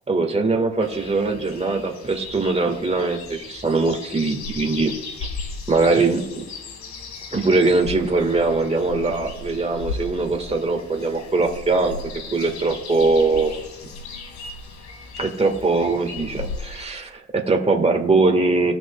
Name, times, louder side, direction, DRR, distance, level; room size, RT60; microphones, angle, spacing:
voice 1, 0.1-4.9 5.7-6.4 7.3-11.9 12.3-13.6 15.2-18.7, right 3 dB, 20° right, 3 dB, 1.7 m, -21 dB
sound 1, 0.8-16.8, left 4 dB, 65° left, 1.8 m, -36 dB
18.5 x 6.1 x 2.3 m, 1.0 s
cardioid pair, 90°, 30 cm